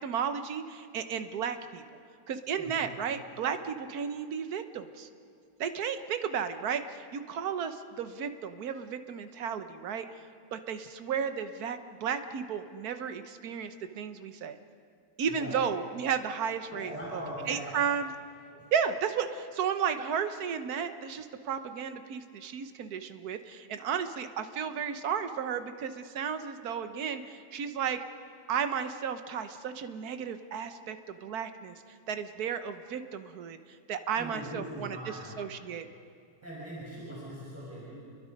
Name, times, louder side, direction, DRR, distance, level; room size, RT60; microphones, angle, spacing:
voice 1, 0.0-1.8 2.3-5.1 5.6-10.0 10.5-14.6 15.2-17.2 17.5-18.1 18.7-28.0 28.5-31.7 32.1-33.6 33.9-35.9, right 7 dB, 70° right, 9 dB, 1.5 m, -33 dB
voice 2, 2.6-2.9 15.3-15.6 16.7-17.9 18.5-18.7 34.1-35.3 36.4-38.0, equal, 10° right, -7 dB, 5.6 m, -41 dB
29.5 x 22.0 x 5.3 m, 2.2 s
omnidirectional pair, 1.7 m